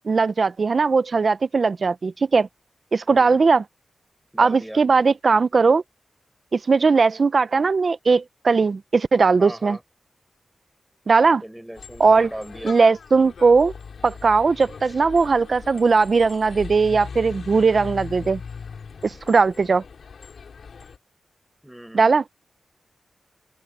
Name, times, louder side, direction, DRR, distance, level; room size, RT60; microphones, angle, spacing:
voice 1, 0.1-2.5 2.9-3.6 4.4-5.8 6.5-9.8 11.1-11.4 12.0-12.3 12.6-13.7 14.0-18.4 19.0-19.8 21.9-22.2, right 4 dB, 45° right, 0.4 m, -18 dB
voice 2, 3.1-3.4 4.3-4.8 9.4-9.8 11.1-12.8 14.9-15.0 21.6-22.2, right 1 dB, 5° right, 5.5 m, -38 dB
sound 1, 11.8-21.0, left 5 dB, 70° left, 2.6 m, -40 dB
open air
wide cardioid pair, 170°, 0 cm